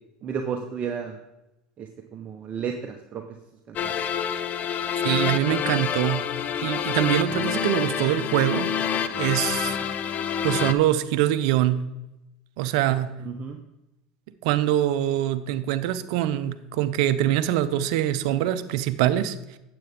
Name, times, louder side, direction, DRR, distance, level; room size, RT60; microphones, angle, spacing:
voice 1, 0.2-1.2 1.8-3.2 3.7-3.9 13.2-13.6, right 6 dB, 35° right, 4 dB, 0.9 m, -32 dB
sound 1, 3.8-10.7, left 8 dB, 45° left, 0.6 m, -27 dB
voice 2, 5.0-6.2 6.6-8.7 9.2-9.8 10.4-11.8 12.6-13.1 14.4-19.4, right 12 dB, 70° right, 12 dB, 0.6 m, -24 dB
9.1 x 7.8 x 3.6 m, 0.93 s
hypercardioid pair, 85°, 4 cm